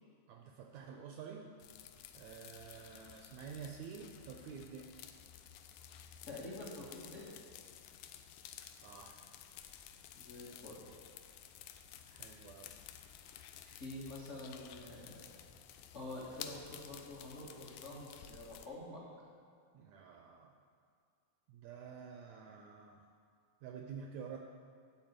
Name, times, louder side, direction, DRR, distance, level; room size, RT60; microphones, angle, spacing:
voice 1, 0.3-1.5 2.1-4.9 8.7-9.3 12.1-12.7 19.7-20.5 21.5-23.0 23.6-24.4, right 6 dB, 80° right, 3 dB, 1.6 m, -49 dB
sound 1, 1.6-18.7, left 9 dB, 85° left, 2.2 m, -53 dB
voice 2, 6.3-7.3 10.1-10.8 13.6-15.3 15.9-19.0, left 2 dB, 60° left, -5 dB, 0.7 m, -47 dB
12.0 x 4.2 x 8.0 m, 2.2 s
omnidirectional pair, 3.8 m